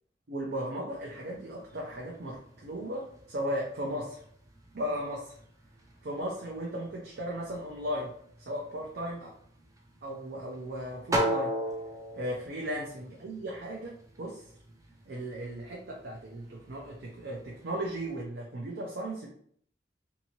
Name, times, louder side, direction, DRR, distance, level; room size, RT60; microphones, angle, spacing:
voice 1, 0.3-4.2 4.7-5.4 6.0-8.1 8.4-9.3 10.0-11.5 12.1-14.4 15.1-19.3, equal, 65° right, -3 dB, 0.6 m, -36 dB
sound 1, 0.9-18.2, right 1 dB, 20° right, 0.4 m, -40 dB
2.8 x 2.7 x 2.8 m, 0.62 s
head